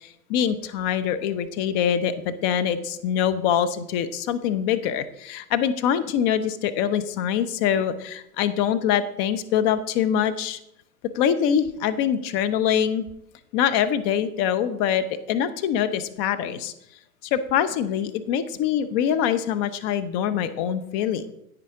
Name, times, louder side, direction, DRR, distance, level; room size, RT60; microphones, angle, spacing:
voice 1, 0.0-10.6 11.1-13.1 13.5-16.7 17.3-21.3, left 9 dB, 35° left, 10 dB, 0.9 m, -24 dB
10.5 x 9.2 x 3.7 m, 0.81 s
hypercardioid pair, 115°, 45 cm